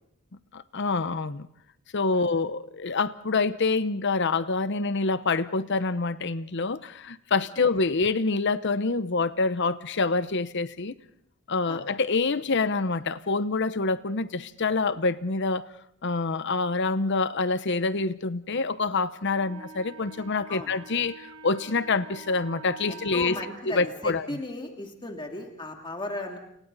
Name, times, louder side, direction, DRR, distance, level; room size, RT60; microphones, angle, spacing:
voice 1, 0.5-1.5 1.9-10.9 11.5-15.7 16.0-23.3 23.7-24.4, left 3 dB, 50° left, 0.9 m, -26 dB
Wind instrument woodwind instrument, 19.2-23.6, right 4 dB, 85° right, 3.7 m, -45 dB
voice 2, 22.9-26.4, left 2 dB, 20° left, 2.7 m, -36 dB
29.5 x 29.5 x 4.1 m
head